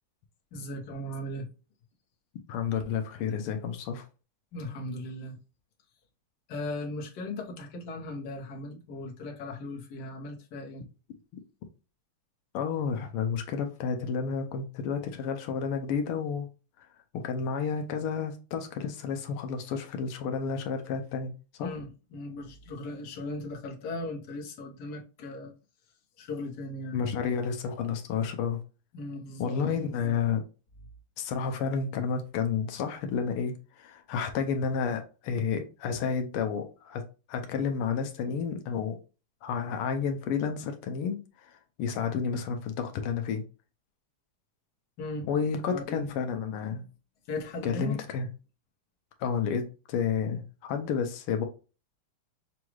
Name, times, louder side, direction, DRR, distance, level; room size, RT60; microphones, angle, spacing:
voice 1, 0.5-1.5 4.5-5.4 6.5-10.9 21.6-25.5 26.2-27.0 28.9-30.2 45.0-45.3 45.7-46.1 47.3-48.0, left 2 dB, 60° left, 1.4 m, -38 dB
voice 2, 2.5-4.0 12.5-16.5 17.1-21.3 21.6-21.7 26.9-28.6 29.4-30.4 31.2-37.0 37.3-39.0 39.4-43.4 45.2-46.9 47.6-48.3 49.2-51.5, left 6 dB, 85° left, 1.6 m, -31 dB
6.1 x 2.3 x 3.0 m
omnidirectional pair, 2.4 m